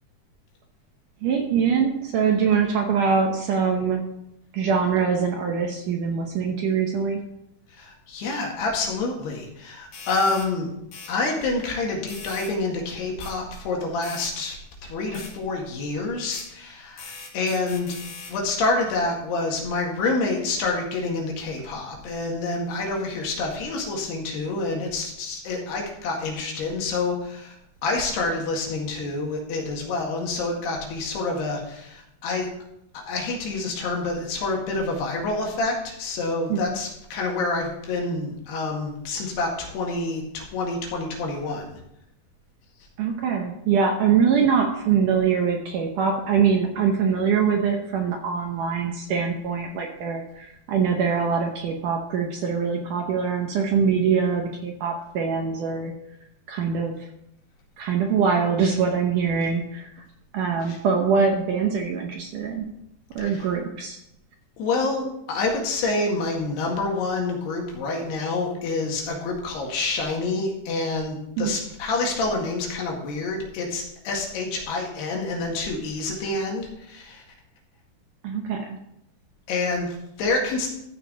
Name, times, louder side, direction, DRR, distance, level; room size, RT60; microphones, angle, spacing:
voice 1, 1.2-4.0 4.5-7.2 36.5-36.8 43.0-55.9 56.5-57.0 57.8-60.0 60.3-62.7 63.2-64.0 71.4-71.5 78.2-78.8, right 6 dB, 70° right, 2 dB, 2.1 m, -23 dB
voice 2, 7.8-10.7 11.1-14.6 14.8-18.0 18.3-27.6 27.8-32.5 33.1-41.8 60.6-60.8 63.2-63.4 64.6-77.2 79.5-80.7, left 3 dB, 80° left, 0 dB, 4.0 m, -27 dB
sound 1, 9.9-10.5 10.9-11.1 12.1-12.5 13.2-13.3 14.0-14.3 15.1-15.3 16.3-16.5 17.0-18.4, left 4 dB, 60° left, 4.2 m, -40 dB
14.0 x 6.4 x 5.1 m, 0.80 s
omnidirectional pair, 4.7 m